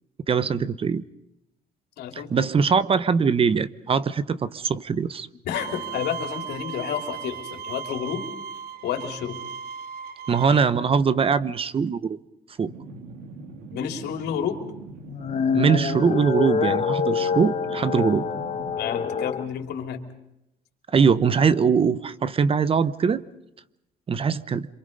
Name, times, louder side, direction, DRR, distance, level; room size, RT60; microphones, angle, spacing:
voice 1, 0.3-1.0 2.1-5.3 10.3-12.2 12.6-12.7 15.5-18.2 20.9-23.2 24.1-24.7, right 6 dB, 35° right, 16 dB, 0.9 m, -22 dB
voice 2, 2.0-2.3 5.4-8.3 8.8-9.4 13.7-14.6 18.8-20.0, left 9 dB, 75° left, 5 dB, 3.4 m, -30 dB
Bowed string instrument, 5.5-10.6, right 7 dB, 65° right, 1.2 m, -36 dB
sound 1, 12.6-18.8, right 3 dB, 80° right, 3.2 m, -41 dB
sound 2, 15.1-19.5, left 6 dB, 40° left, 1.5 m, -26 dB
27.0 x 24.0 x 5.4 m, 0.85 s
cardioid pair, 110°, 17 cm